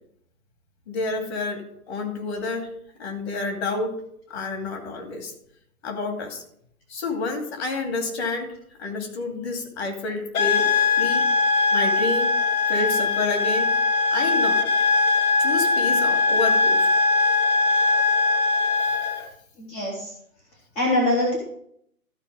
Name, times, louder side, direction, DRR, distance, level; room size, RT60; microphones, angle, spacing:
voice 1, 0.9-2.7 3.0-4.0 4.3-5.3 5.8-6.4 6.9-8.5 8.8-10.7 11.0-11.2 11.7-12.3 12.7-13.7 14.1-14.7 15.4-16.9, left 3 dB, 45° left, 3 dB, 2.6 m, -29 dB
sound 1, 10.3-19.3, left 3 dB, 70° left, 1.2 m, -21 dB
voice 2, 19.6-20.1 20.8-21.4, left 1 dB, 10° left, -2 dB, 0.7 m, -23 dB
13.0 x 4.6 x 6.1 m, 0.71 s
hypercardioid pair, 150°, 44 cm